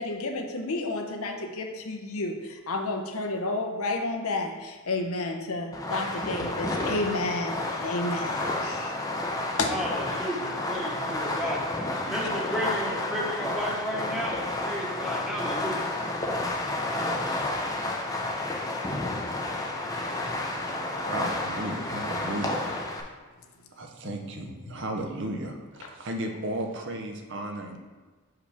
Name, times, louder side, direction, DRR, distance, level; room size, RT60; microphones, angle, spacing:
voice 1, 0.0-9.0 9.6-9.7 24.0-24.1, left 2 dB, 75° left, 3 dB, 0.7 m, -31 dB
Fireworks, 5.7-23.0, left 2 dB, 15° left, 0.5 m, -31 dB
voice 2, 9.7-11.6 12.0-15.9, equal, ahead, -4 dB, 1.0 m, -33 dB
voice 3, 21.0-23.0 23.8-27.8, right 1 dB, 55° right, 3 dB, 0.7 m, -35 dB
5.9 x 4.8 x 3.4 m, 1.4 s
head